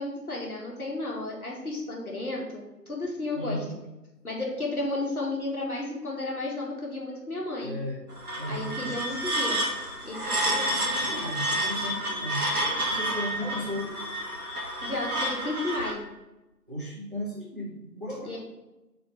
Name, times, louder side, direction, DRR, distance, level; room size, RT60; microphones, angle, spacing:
voice 1, 0.0-3.6 4.2-7.7 8.5-9.6 10.0-10.7 14.8-16.0 18.2-18.4, left 2 dB, 60° left, -2 dB, 1.8 m, -33 dB
voice 2, 3.3-3.7 7.6-8.0 8.4-9.0 10.4-14.0 16.7-18.4, equal, 30° right, -4 dB, 1.0 m, -36 dB
sound 1, 8.1-15.9, right 1 dB, 60° right, 1.5 m, -30 dB
4.7 x 3.9 x 5.3 m, 1.0 s
figure-of-eight pair, 170°, 50 cm